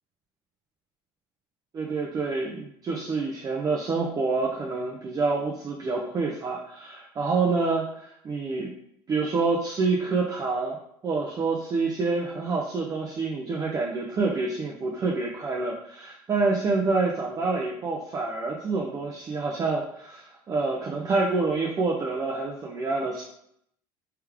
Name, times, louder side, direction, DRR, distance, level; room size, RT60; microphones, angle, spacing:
voice 1, 1.7-8.7 9.1-10.8 11.0-23.2, right 3 dB, 30° right, -1 dB, 0.6 m, -27 dB
3.4 x 3.2 x 3.5 m, 0.73 s
supercardioid pair, 105°, 12 cm